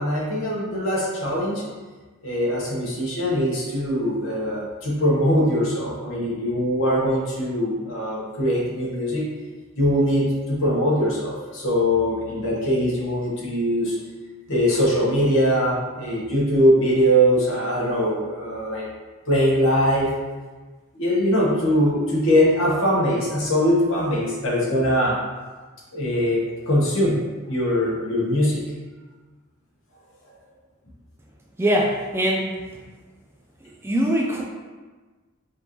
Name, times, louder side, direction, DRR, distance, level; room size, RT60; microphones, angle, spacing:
voice 1, 0.0-1.6 2.2-9.2 9.8-14.0 14.5-18.8 19.3-20.1 20.9-25.2 25.9-26.4 26.7-27.2 27.5-28.6 30.3-30.4, equal, 65° left, -5 dB, 1.3 m, -21 dB
voice 2, 31.6-32.5 33.8-34.4, equal, 10° right, -1 dB, 0.3 m, -22 dB
5.0 x 2.7 x 3.1 m, 1.3 s
head